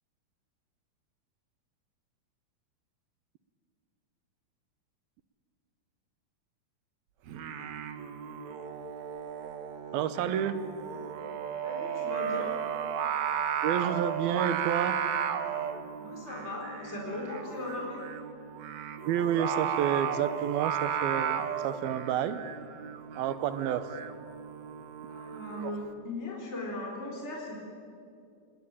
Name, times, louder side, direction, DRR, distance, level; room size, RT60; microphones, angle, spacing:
Singing, 7.3-25.7, right 8 dB, 60° right, 2.1 m, -34 dB
voice 1, 9.9-10.5 13.6-14.9 19.1-22.4 23.2-23.8, right 9 dB, 80° right, 12 dB, 2.8 m, -29 dB
voice 2, 11.6-12.6 16.0-18.0 25.1-27.6, left 2 dB, 15° left, -1 dB, 4.2 m, -38 dB
27.5 x 20.0 x 9.0 m, 2.4 s
omnidirectional pair, 4.3 m